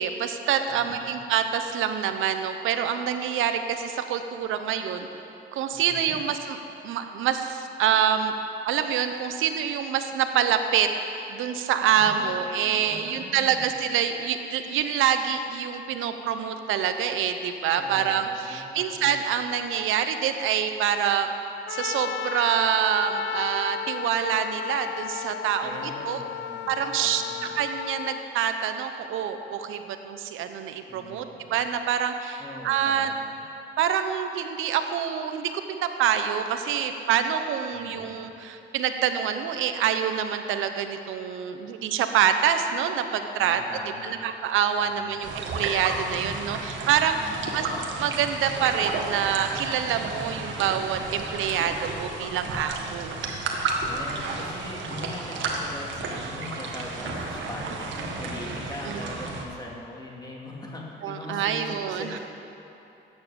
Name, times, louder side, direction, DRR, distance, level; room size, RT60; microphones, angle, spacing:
voice 1, 0.0-5.1 5.5-8.3 8.6-10.9 11.3-21.3 21.7-25.8 26.0-26.2 26.7-27.2 27.5-33.1 33.8-43.6 44.0-47.7 48.0-53.2 58.8-59.0 61.0-62.2, right 9 dB, 90° right, 8 dB, 0.9 m, -26 dB
voice 2, 0.7-1.2 5.7-6.2 12.0-13.7 17.8-19.1 25.6-27.5 30.9-31.5 32.4-33.3 37.7-38.1 43.4-44.3 44.8-45.2 47.1-47.8 52.4-53.0 53.9-62.2, left 2 dB, 20° left, -2 dB, 2.4 m, -41 dB
Trumpet, 21.7-28.2, left 11 dB, 65° left, 0.4 m, -34 dB
sound 1, 45.2-59.5, right 3 dB, 70° right, 1.8 m, -32 dB
13.5 x 9.4 x 6.9 m, 2.9 s
cardioid pair, 90°, 20 cm